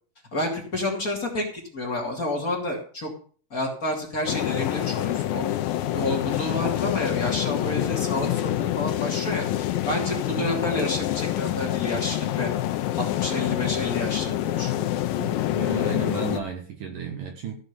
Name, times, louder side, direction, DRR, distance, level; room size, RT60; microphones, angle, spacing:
voice 1, 0.3-3.1 3.5-5.6 5.9-12.5 13.0-14.9, left 1 dB, 25° left, -1 dB, 2.5 m, -29 dB
sound 1, 4.3-16.4, left 13 dB, 75° left, 2.2 m, -27 dB
voice 2, 15.2-17.6, right 6 dB, 60° right, 4 dB, 2.8 m, -33 dB
15.0 x 6.1 x 6.8 m, 0.43 s
omnidirectional pair, 4.7 m